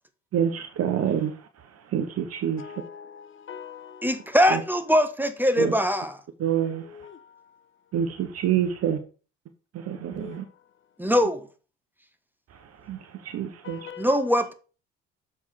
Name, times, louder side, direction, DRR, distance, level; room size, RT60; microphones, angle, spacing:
voice 1, 0.3-1.3 1.9-2.6 4.5-4.6 5.6-5.7 6.4-6.8 7.9-9.0 9.7-10.4 12.9-13.9, right 9 dB, 50° right, 1.1 m, -27 dB
voice 2, 2.6-4.2 6.7-7.3 10.1-10.4 13.6-14.1, left 8 dB, 40° left, 1.0 m, -43 dB
voice 3, 4.0-6.2 11.0-11.4 14.0-14.5, equal, 5° right, 1.1 m, -22 dB
7.1 x 4.5 x 6.3 m
supercardioid pair, 75°, 31 cm